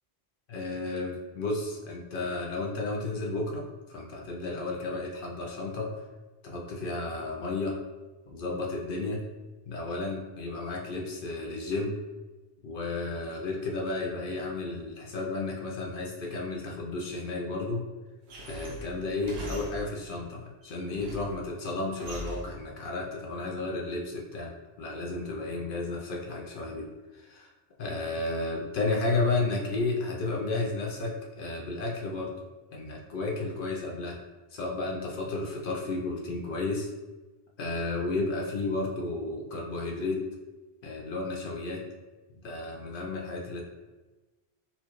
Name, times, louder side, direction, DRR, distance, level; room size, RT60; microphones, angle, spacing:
voice 1, 0.5-5.9 6.4-7.8 8.3-9.2 9.7-12.0 12.6-17.8 18.4-26.9 27.1-27.5 27.8-32.3 32.7-34.2 34.5-36.9 37.6-40.2 40.8-41.8 42.4-43.6, left 3 dB, 60° left, -1 dB, 0.7 m, -32 dB
sound 1, 18.3-20.1 20.6-21.4 22.0-22.6, right 1 dB, 70° right, 0.9 m, -41 dB
4.2 x 2.3 x 2.9 m, 1.2 s
omnidirectional pair, 1.1 m